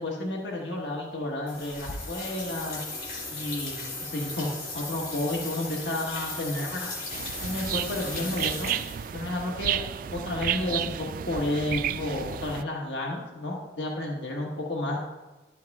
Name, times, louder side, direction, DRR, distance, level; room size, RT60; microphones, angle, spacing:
voice 1, 0.0-2.8 3.3-6.9 7.4-8.7 9.1-15.0, left 1 dB, 75° left, -1 dB, 1.3 m, -31 dB
sound 1, 1.5-9.3, left 2 dB, 55° left, 3.1 m, -37 dB
sound 2, 7.1-12.6, right 9 dB, 50° right, 0.3 m, -32 dB
12.0 x 7.6 x 3.5 m, 1.2 s
head